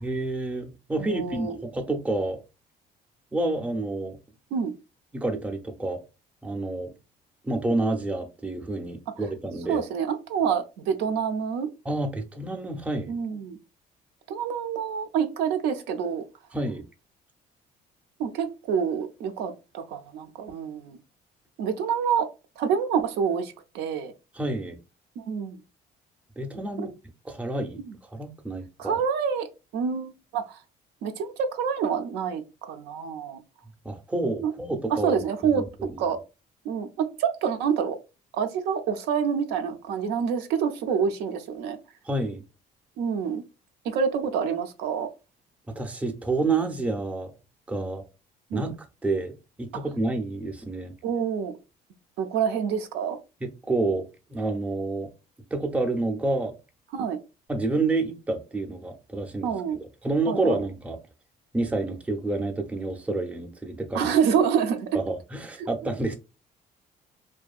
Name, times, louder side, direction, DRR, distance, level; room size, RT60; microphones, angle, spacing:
voice 1, 0.0-2.4 3.3-4.2 5.1-6.0 6.4-6.9 7.4-9.8 11.9-13.1 16.5-16.9 24.3-24.8 26.4-26.9 27.2-27.8 28.1-29.0 33.8-35.2 35.5-36.0 42.0-42.4 45.7-47.3 47.7-48.1 48.5-48.8 49.0-50.9 53.4-55.1 55.5-56.5 57.5-61.0 61.5-64.1 64.9-66.2, right 2 dB, 10° right, 0.4 m, -29 dB
voice 2, 1.0-1.6 4.5-4.7 9.7-11.7 13.1-13.6 14.3-16.2 18.2-21.0 21.6-22.3 22.6-24.1 25.2-25.6 26.8-26.9 27.9-28.0 28.8-29.5 29.7-30.6 31.0-33.4 34.4-34.5 35.0-36.2 36.6-38.0 38.3-41.8 43.0-43.4 43.8-45.1 48.5-48.7 51.0-51.5 52.2-53.2 56.9-57.2 59.4-59.8 60.3-60.6 63.9-64.9 65.6-65.7, right 7 dB, 85° right, 0.5 m, -27 dB
2.6 x 2.2 x 2.3 m
cardioid pair, 110°, 17 cm